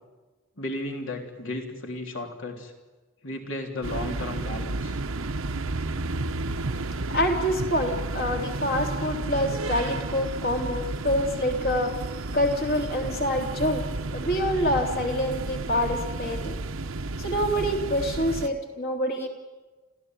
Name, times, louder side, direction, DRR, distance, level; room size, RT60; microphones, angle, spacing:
voice 1, 0.6-2.7 3.2-5.0, left 1 dB, 65° left, 2 dB, 3.6 m, -34 dB
sound 1, 3.8-18.5, right 2 dB, 75° right, 1.0 m, -32 dB
voice 2, 7.1-12.0 12.3-13.8 14.1-16.6 17.2-19.3, equal, 50° left, 2 dB, 3.4 m, -26 dB
30.0 x 14.5 x 9.3 m, 1.2 s
head